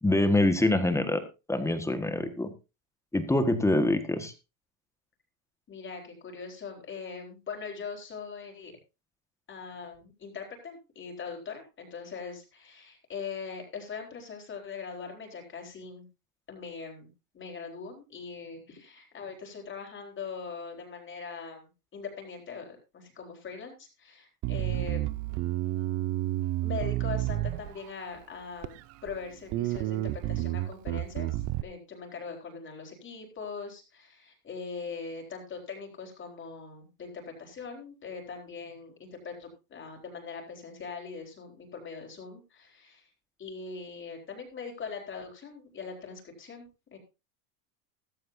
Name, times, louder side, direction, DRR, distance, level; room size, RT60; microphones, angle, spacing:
voice 1, 0.0-1.2 1.5-2.5 3.1-4.3, left 1 dB, 5° left, 8 dB, 1.5 m, -25 dB
voice 2, 5.7-8.7 9.5-16.1 16.5-17.1 17.3-25.0 26.6-28.7 29.0-43.0 43.4-47.0, left 5 dB, 25° left, 2 dB, 4.2 m, -41 dB
Bass guitar, 24.4-28.0 28.6-29.2 29.5-31.6, right 16 dB, 35° right, 0.5 m, -30 dB
14.5 x 14.0 x 2.7 m, 0.28 s
supercardioid pair, 125°, 45 cm